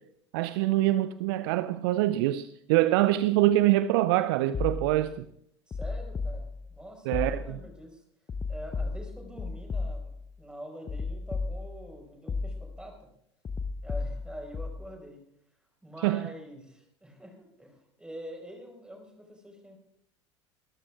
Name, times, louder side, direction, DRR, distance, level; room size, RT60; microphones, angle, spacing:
voice 1, 0.3-5.2 7.1-7.6 16.0-16.2, right 15 dB, 55° right, 0.5 m, -25 dB
sound 1, 4.5-5.2 5.7-6.8 7.1-7.7 8.3-10.3 10.9-11.9 12.3-12.9 13.4-14.9, left 4 dB, 20° left, 0.9 m, -34 dB
voice 2, 5.7-8.0 8.5-10.1 10.4-12.9 13.8-15.2 15.8-19.8, equal, 5° right, 4.8 m, -45 dB
24.5 x 13.5 x 2.5 m
figure-of-eight pair, 75°, 15 cm